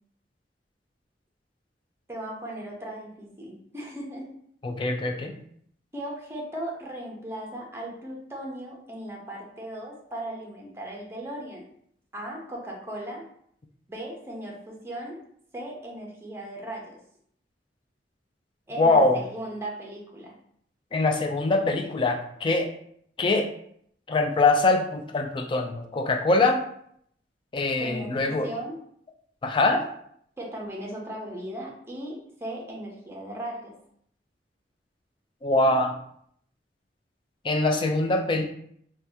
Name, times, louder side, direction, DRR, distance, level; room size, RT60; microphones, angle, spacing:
voice 1, 2.1-4.3 5.9-11.6 12.1-13.3 13.9-15.2 15.5-17.0 18.7-20.3 27.8-28.8 30.4-33.8, right 1 dB, 15° right, -2 dB, 0.6 m, -37 dB
voice 2, 4.6-5.4 18.8-19.2 20.9-22.7 23.2-23.5 24.1-26.6 27.5-28.5 29.4-29.9 35.4-36.0 37.4-38.4, left 2 dB, 30° left, 3 dB, 0.3 m, -23 dB
2.7 x 2.3 x 3.5 m, 0.67 s
head